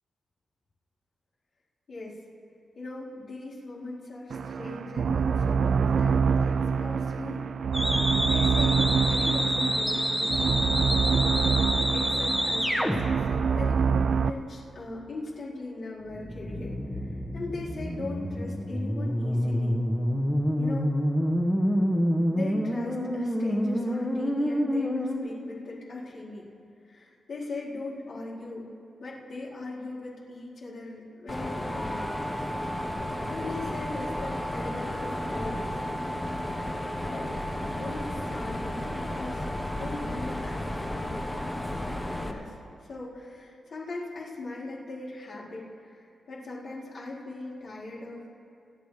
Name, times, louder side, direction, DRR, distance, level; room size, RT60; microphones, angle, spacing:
voice 1, 2.8-7.5 8.2-10.7 11.2-11.4 11.9-19.8 20.6-20.9 21.5-21.6 22.3-26.5 26.9-28.7 29.0-32.1 33.2-35.8 37.0-37.3 37.7-39.5 39.7-41.5 42.1-42.5 42.9-48.3, left 2 dB, 70° left, -9 dB, 4.4 m, -39 dB
sound 1, 4.3-14.3, right 6 dB, 70° right, 0.4 m, -26 dB
sound 2, 7.7-13.0 16.1-25.2, equal, 5° left, 1.5 m, -27 dB
Mechanisms, 31.3-42.3, left 1 dB, 20° left, 1.1 m, -33 dB
27.5 x 10.0 x 3.4 m, 2.5 s
cardioid pair, 80°, 0 cm